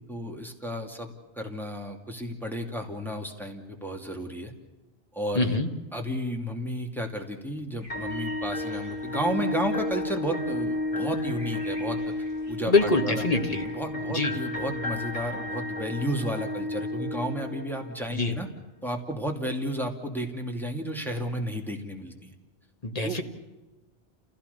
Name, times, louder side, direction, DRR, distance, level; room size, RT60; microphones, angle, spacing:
voice 1, 0.1-4.5 5.1-5.5 5.9-12.0 12.5-13.2 13.7-18.5 18.8-22.3 23.0-23.2, equal, ahead, 2 dB, 2.7 m, -32 dB
voice 2, 5.3-5.7 12.7-13.7 14.1-14.4 18.2-18.4 22.8-23.2, left 3 dB, 35° left, 4 dB, 2.1 m, -24 dB
sound 1, 7.8-13.7, right 1 dB, 25° right, 5.5 m, -51 dB
sound 2, 7.9-17.9, left 1 dB, 60° left, 3.8 m, -32 dB
29.0 x 16.5 x 6.9 m, 1.1 s
omnidirectional pair, 1.1 m